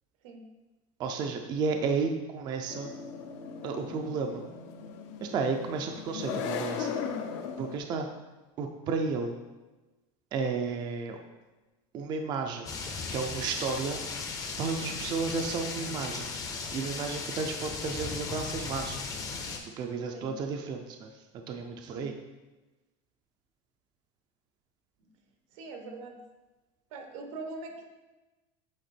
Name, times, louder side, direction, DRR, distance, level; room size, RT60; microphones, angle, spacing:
voice 1, 1.0-2.9 3.6-4.4 5.2-6.9 7.6-8.1 8.6-9.3 10.3-11.2 11.9-12.8 13.1-14.0 14.6-16.3 16.7-19.0 19.8-22.2, right 4 dB, 25° right, 4 dB, 0.4 m, -32 dB
sound 1, 2.7-7.8, left 6 dB, 65° left, 0.6 m, -37 dB
sound 2, 12.7-19.6, left 4 dB, 20° left, 0.5 m, -37 dB
voice 2, 25.5-26.2 26.9-27.8, right 3 dB, 85° right, 4 dB, 1.2 m, -42 dB
8.0 x 3.4 x 4.3 m, 1.1 s
cardioid pair, 170°, 16 cm